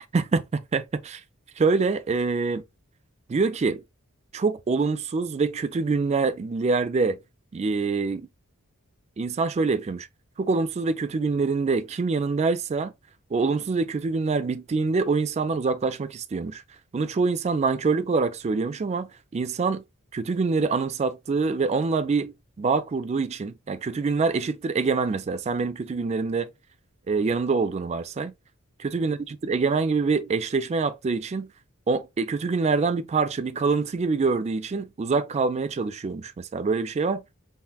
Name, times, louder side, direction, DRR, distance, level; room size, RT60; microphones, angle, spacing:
voice 1, 0.1-1.2 1.6-2.6 3.3-3.8 4.3-7.2 7.5-8.3 9.2-10.1 10.4-12.9 13.3-16.6 16.9-19.8 20.1-26.5 27.1-28.3 28.8-31.5 31.9-37.2, right 4 dB, 30° right, 0.3 m, -25 dB
5.6 x 2.1 x 2.3 m
head